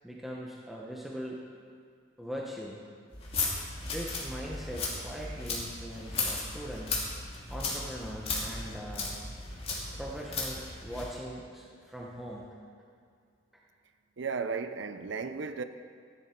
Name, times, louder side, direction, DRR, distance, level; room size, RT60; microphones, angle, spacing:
voice 1, 0.0-1.4 2.2-2.8 3.8-7.0 7.5-9.1 9.9-12.6, equal, ahead, 1.0 m, -41 dB
sound 1, 3.1-11.1, left 3 dB, 30° left, 2.1 m, -36 dB
voice 2, 14.2-15.6, right 5 dB, 65° right, 0.6 m, -34 dB
14.5 x 11.0 x 4.5 m
head